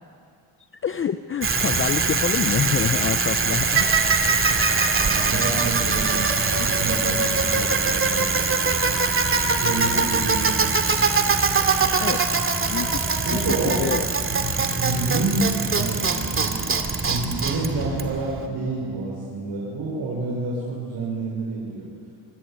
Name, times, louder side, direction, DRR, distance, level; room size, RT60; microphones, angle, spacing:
voice 1, 0.8-3.8 6.6-6.7 9.9-10.1 11.9-12.2 12.7-13.0 13.3-14.0, left 7 dB, 30° left, 11 dB, 0.6 m, -27 dB
Bicycle, 1.4-18.5, right 4 dB, 25° right, 2.5 m, -22 dB
voice 2, 5.0-8.2 9.6-10.5 13.2-13.9 14.3-16.1 16.3-21.9, right 3 dB, 60° right, -4 dB, 6.2 m, -29 dB
26.5 x 23.0 x 9.2 m, 2.4 s
cardioid pair, 120°, 45 cm